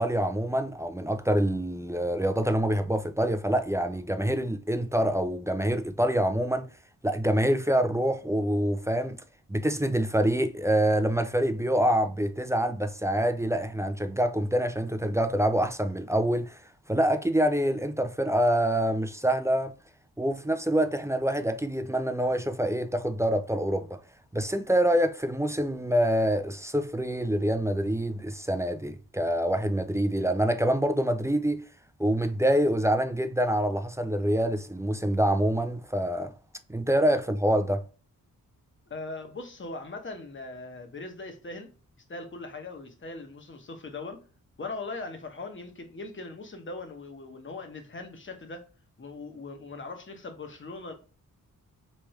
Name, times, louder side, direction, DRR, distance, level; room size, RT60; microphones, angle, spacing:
voice 1, 0.0-6.7 7.0-9.2 9.5-16.6 16.9-19.7 20.2-24.0 24.3-31.6 32.0-36.3 36.7-37.8, right 1 dB, 10° right, 0.3 m, -26 dB
voice 2, 38.9-41.7 42.1-44.2 44.6-48.6 49.0-50.9, left 3 dB, 35° left, 1.0 m, -40 dB
3.3 x 3.2 x 3.1 m
wide cardioid pair, 100°, 34 cm